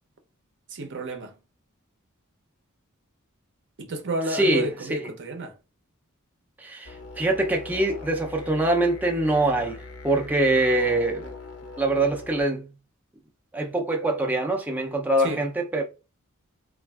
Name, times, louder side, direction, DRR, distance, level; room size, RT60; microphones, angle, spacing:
voice 1, 0.7-1.3 3.8-5.6 15.2-15.4, right 2 dB, 60° right, 0.6 m, -31 dB
voice 2, 4.3-5.1 6.6-11.3 11.8-12.7 13.5-15.8, right 2 dB, 10° right, 0.4 m, -24 dB
sound 1, 6.8-12.4, left 3 dB, 90° left, 0.7 m, -41 dB
3.3 x 2.3 x 2.2 m
head